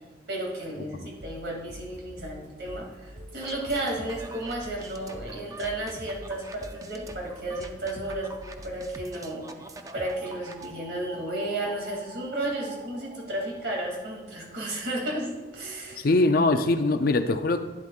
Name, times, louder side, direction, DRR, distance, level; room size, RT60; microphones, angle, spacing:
voice 1, 0.3-9.5 9.9-16.1, right 1 dB, 65° right, -1 dB, 2.5 m, -33 dB
sound 1, 1.2-9.0, equal, 45° right, 1.0 m, -46 dB
sound 2, 3.1-16.4, right 2 dB, 80° right, 1.1 m, -48 dB
sound 3, 3.4-10.7, right 2 dB, 20° right, 0.4 m, -45 dB
voice 2, 16.0-17.6, left 2 dB, 50° left, 8 dB, 0.5 m, -22 dB
11.5 x 10.0 x 2.4 m, 1.2 s
head